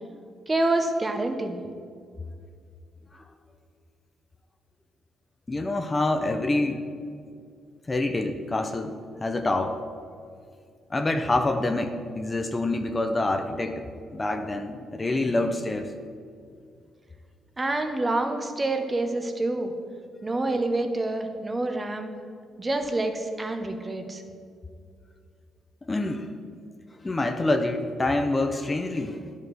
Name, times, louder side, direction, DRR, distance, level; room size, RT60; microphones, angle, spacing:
voice 1, 0.5-1.6 17.6-19.7 20.2-22.1 22.6-24.2, right 2 dB, 25° right, 6 dB, 1.0 m, -27 dB
voice 2, 5.5-6.8 7.9-8.9 9.2-9.8 10.9-15.9 25.8-26.3 27.0-29.2, left 2 dB, 25° left, 6 dB, 0.7 m, -26 dB
11.0 x 5.2 x 6.3 m, 2.3 s
cardioid pair, 90°, 0 cm